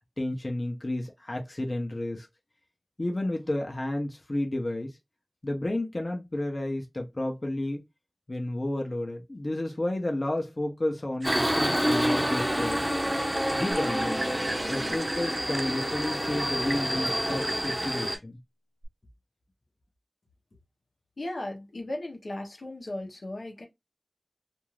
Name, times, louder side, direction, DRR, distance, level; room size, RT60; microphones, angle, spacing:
voice 1, 0.2-2.3 3.0-5.0 5.4-7.8 8.3-12.9 13.5-14.3 14.7-18.4, left 1 dB, 50° left, 0.7 m, -31 dB
Subway metro underground, 11.2-18.2, equal, 10° right, 0.6 m, -28 dB
sound 1, 11.2-18.2, right 2 dB, 80° right, 0.4 m, -39 dB
sound 2, 13.7-15.0 18.8-18.9, right 1 dB, 65° right, 1.0 m, -37 dB
voice 2, 21.2-23.7, left 1 dB, 85° left, 0.8 m, -36 dB
2.5 x 2.4 x 3.1 m
wide cardioid pair, 60°, 0 cm